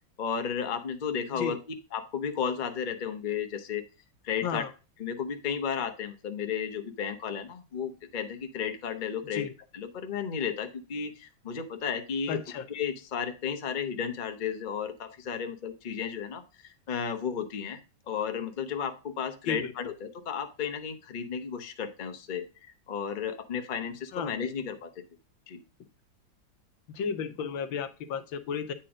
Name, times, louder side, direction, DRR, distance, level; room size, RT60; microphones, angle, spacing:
voice 1, 0.2-1.6 1.9-3.8 4.2-4.6 5.0-9.4 9.7-12.4 12.7-17.8 18.1-25.0 25.5-25.6, left 7 dB, 40° left, 6 dB, 0.7 m, -33 dB
voice 2, 12.3-12.6 19.5-19.7 24.1-24.3 26.9-28.7, left 6 dB, 80° left, 10 dB, 1.6 m, -33 dB
8.9 x 4.4 x 4.9 m, 0.32 s
omnidirectional pair, 2.1 m